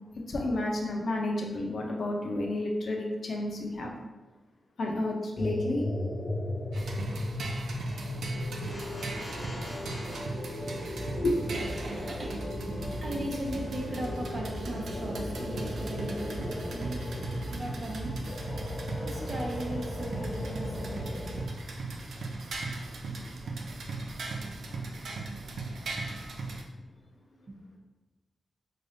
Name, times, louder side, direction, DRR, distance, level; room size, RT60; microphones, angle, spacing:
voice 1, 0.3-3.9 4.8-5.8 11.2-11.4, left 1 dB, 65° left, 0 dB, 0.7 m, -30 dB
sound 1, 5.4-21.5, left 1 dB, 35° left, 0.7 m, -36 dB
sound 2, 6.7-26.6, right 3 dB, 90° right, 0.4 m, -39 dB
voice 2, 10.2-11.1 11.5-17.0 17.5-18.1 19.0-21.2 26.8-26.9 27.3-27.8, right 1 dB, 50° right, -1 dB, 0.8 m, -39 dB
3.9 x 3.2 x 2.7 m, 1.2 s
wide cardioid pair, 105°, 0 cm